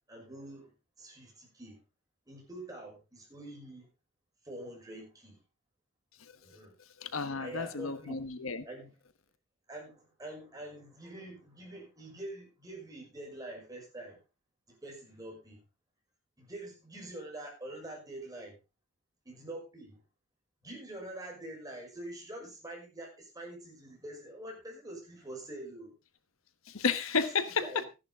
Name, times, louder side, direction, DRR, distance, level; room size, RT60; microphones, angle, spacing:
voice 1, 0.1-0.7 1.0-1.8 2.3-3.9 4.4-5.4 6.4-6.7 7.4-8.2 8.6-8.9 9.7-14.2 14.7-15.6 16.4-18.6 19.2-20.0 20.6-25.9 27.6-27.9, right 1 dB, 15° right, 6.0 m, -45 dB
voice 2, 7.0-8.6 26.7-27.6, left 5 dB, 85° left, 1.2 m, -32 dB
14.5 x 11.0 x 3.5 m
head